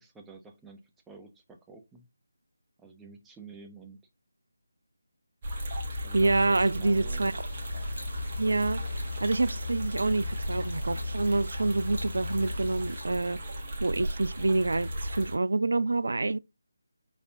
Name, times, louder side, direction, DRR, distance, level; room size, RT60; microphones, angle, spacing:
voice 1, 0.0-2.1 2.8-4.0 6.0-7.3, right 4 dB, 5° right, 0.5 m, -49 dB
sound 1, 5.4-15.4, left 1 dB, 30° right, 1.2 m, -35 dB
voice 2, 5.9-7.3 8.4-8.8 9.2-13.4 13.8-16.4, right 2 dB, 60° right, 0.3 m, -27 dB
sound 2, 7.1-13.1, left 1 dB, 80° left, 1.9 m, -49 dB
5.0 x 4.0 x 2.6 m
figure-of-eight pair, 155°, 0 cm